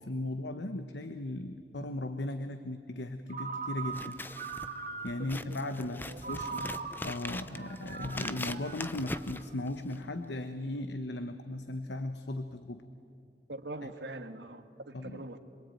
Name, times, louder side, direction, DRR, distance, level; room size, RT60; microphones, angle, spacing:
voice 1, 0.0-4.2 5.0-12.8 13.8-13.9 14.9-15.2, left 1 dB, 85° left, 9 dB, 1.1 m, -37 dB
Ringtone, 3.3-5.4 6.2-9.6, right 5 dB, 50° right, 2.0 m, -41 dB
Scissors, 3.8-10.1, left 2 dB, 10° left, 0.7 m, -41 dB
voice 2, 5.2-6.4 13.5-15.4, right 2 dB, 80° right, 7 dB, 1.6 m, -43 dB
26.5 x 22.5 x 9.2 m, 2.4 s
head